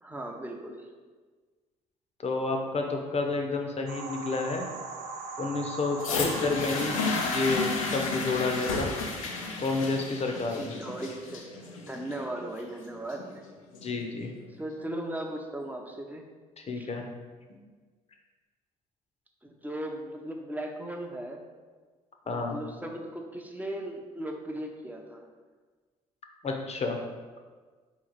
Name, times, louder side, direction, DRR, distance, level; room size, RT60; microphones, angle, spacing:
voice 1, 0.0-0.9 6.1-7.0 10.5-11.4 11.8-13.4 14.5-16.3 16.7-16.9 19.4-21.4 22.3-25.3, right 1 dB, 10° right, 2 dB, 0.7 m, -37 dB
voice 2, 2.2-4.6 5.4-7.0 7.2-8.9 9.6-10.8 13.8-14.3 16.6-17.0 22.3-22.6 26.4-27.0, left 3 dB, 40° left, 3 dB, 0.8 m, -30 dB
sound 1, 3.9-9.6, right 3 dB, 75° right, 0.5 m, -41 dB
sound 2, 6.0-14.0 14.8-14.9, left 3 dB, 90° left, 0.5 m, -33 dB
4.2 x 3.1 x 4.0 m, 1.4 s
hypercardioid pair, 50°, 17 cm